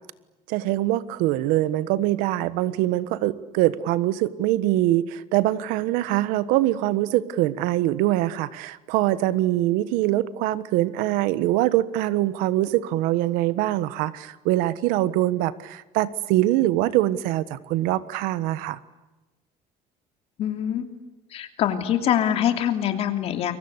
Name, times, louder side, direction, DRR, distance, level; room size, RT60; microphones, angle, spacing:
voice 1, 0.5-18.8, right 15 dB, 85° right, 16 dB, 1.3 m, -23 dB
voice 2, 20.4-20.9 21.3-23.5, left 10 dB, 45° left, 6 dB, 3.0 m, -24 dB
29.5 x 23.5 x 8.2 m, 1.1 s
cardioid pair, 160°, 14 cm